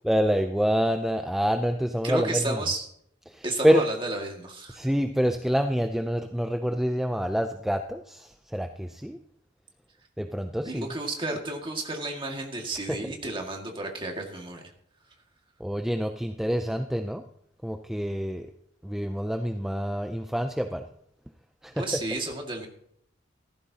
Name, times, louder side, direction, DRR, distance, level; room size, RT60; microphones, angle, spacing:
voice 1, 0.0-2.6 3.3-3.8 4.7-9.2 10.2-10.9 12.9-13.0 15.6-17.2 17.6-18.5 18.8-20.9 21.6-21.9, equal, ahead, 6 dB, 0.5 m, -27 dB
voice 2, 2.0-2.9 3.4-4.9 10.7-14.6 21.8-22.7, right 2 dB, 25° right, 1 dB, 2.0 m, -32 dB
15.5 x 14.0 x 2.9 m, 0.69 s
head